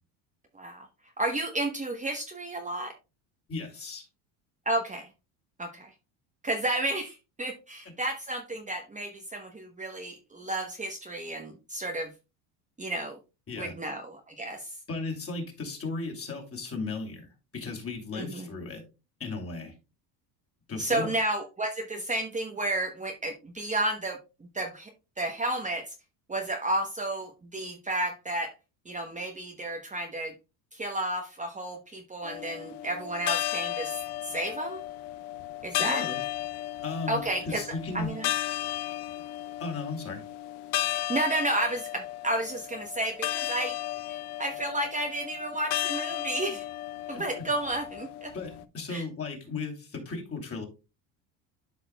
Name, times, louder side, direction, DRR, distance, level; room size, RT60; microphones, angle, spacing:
voice 1, 0.5-0.9 1.2-2.9 4.7-5.1 5.6-5.9 6.4-12.1 12.8-13.2 13.6-14.8 18.1-18.5 20.8-24.2 24.5-24.9 25.2-25.9 26.3-28.5 28.8-30.3 30.7-34.8 35.6-36.0 37.1-37.6 37.9-38.3 41.1-43.8 44.1-46.7 47.1-48.3 48.9-49.0, right 1 dB, 15° right, 1.0 m, -32 dB
voice 2, 3.5-4.1 7.9-8.0 13.5-13.7 14.9-17.3 17.5-18.8 19.2-19.7 20.7-21.1 35.7-36.2 36.8-38.1 39.6-40.2 47.1-47.4 48.3-50.6, left 3 dB, 30° left, 2.7 m, -36 dB
sound 1, 32.2-48.6, left 14 dB, 55° left, 0.7 m, -34 dB
12.0 x 4.9 x 2.2 m
supercardioid pair, 105°, 47 cm